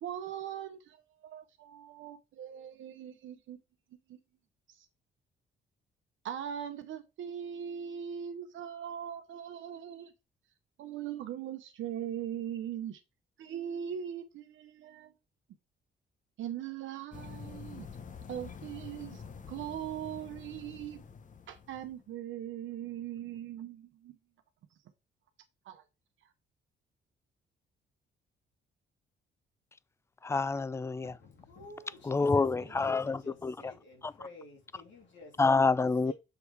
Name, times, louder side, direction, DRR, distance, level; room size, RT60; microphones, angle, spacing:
voice 1, 0.0-3.6 4.1-4.2 4.7-4.9 6.2-10.1 10.8-13.0 13.4-15.1 16.4-17.9 18.3-21.0 21.5-24.2 25.6-25.8, right 9 dB, 75° right, 0.9 m, -40 dB
sound 1, 17.1-22.1, left 6 dB, 40° left, 0.9 m, -47 dB
voice 2, 30.2-31.1 32.0-33.7 34.0-34.1 35.4-36.1, left 4 dB, 15° left, 0.3 m, -28 dB
voice 3, 31.0-35.4 36.0-36.1, left 2 dB, 70° left, 3.2 m, -51 dB
6.9 x 3.4 x 4.7 m
cardioid pair, 90°, 20 cm